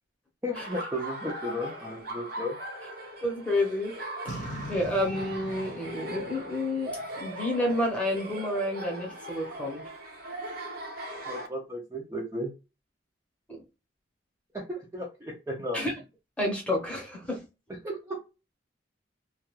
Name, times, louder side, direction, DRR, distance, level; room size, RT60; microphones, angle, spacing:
voice 1, 0.4-2.6 11.3-12.5 14.5-15.9 17.8-18.2, equal, 15° right, 0.5 m, -34 dB
Laughter, 0.6-11.5, right 1 dB, 50° right, 0.7 m, -39 dB
voice 2, 3.2-4.0 4.3-9.8 13.5-13.6 15.7-15.9 16.4-17.4, left 1 dB, 5° left, 0.9 m, -30 dB
Boom, 4.3-7.6, right 1 dB, 40° left, 0.8 m, -41 dB
2.4 x 2.3 x 3.0 m
head